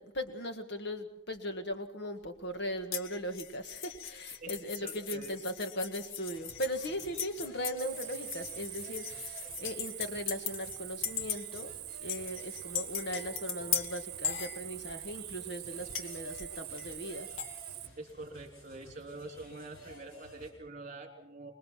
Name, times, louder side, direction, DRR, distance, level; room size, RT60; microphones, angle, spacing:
voice 1, 0.0-11.7 12.0-17.3, equal, 55° left, 8 dB, 1.8 m, -38 dB
sound 1, 2.9-10.8 11.0-11.7 12.1-15.1 15.9-17.5, left 8 dB, 70° left, 1.4 m, -39 dB
voice 2, 4.3-5.4 18.0-21.5, right 2 dB, 35° right, 4 dB, 3.2 m, -46 dB
sound 2, 6.3-20.5, equal, 90° left, 6.2 m, -54 dB
Cricket, 7.8-17.9, right 16 dB, 55° right, 1.4 m, -44 dB
25.0 x 21.0 x 5.9 m, 0.81 s
head